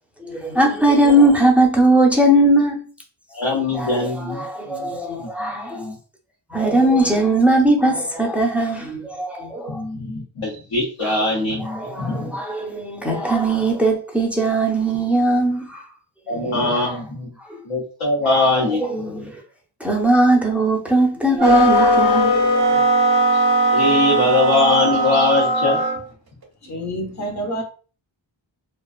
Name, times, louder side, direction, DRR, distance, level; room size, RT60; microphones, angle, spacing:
voice 1, 0.3-2.8 3.7-4.0 4.3-5.8 6.5-9.8 11.0-11.2 11.6-15.8 16.3-17.0 18.3-18.4 18.8-19.3 19.8-22.8, right 1 dB, 5° right, 0.5 m, -19 dB
voice 2, 3.3-4.9 5.2-5.9 9.7-12.3 16.3-17.3 17.7-19.3 23.3-23.4 23.7-25.8, left 3 dB, 85° left, 0.9 m, -22 dB
sound 1, 21.4-26.0, right 1 dB, 50° right, 0.6 m, -18 dB
voice 3, 26.6-27.6, equal, 35° left, 0.7 m, -28 dB
2.4 x 2.2 x 2.3 m
wide cardioid pair, 75°, 47 cm